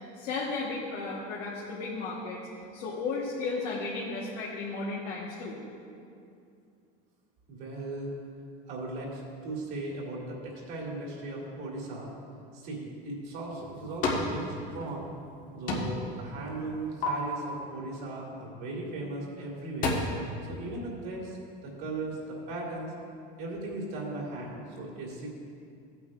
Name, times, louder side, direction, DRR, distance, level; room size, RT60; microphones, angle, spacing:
voice 1, 0.1-2.4 2.7-5.6, left 3 dB, 55° left, -5 dB, 1.4 m, -34 dB
voice 2, 7.5-8.1 8.7-12.1 12.5-15.1 15.5-19.9 20.5-21.4 21.6-22.9 23.4-25.3, right 2 dB, 50° right, -3 dB, 2.5 m, -37 dB
sound 1, 13.3-14.3 14.7-15.4 15.7-16.1 16.5-17.1 18.9-19.1 19.5-19.9, left 3 dB, 40° left, 1.6 m, -32 dB
15.5 x 9.0 x 2.5 m, 2.4 s
cardioid pair, 160°, 20 cm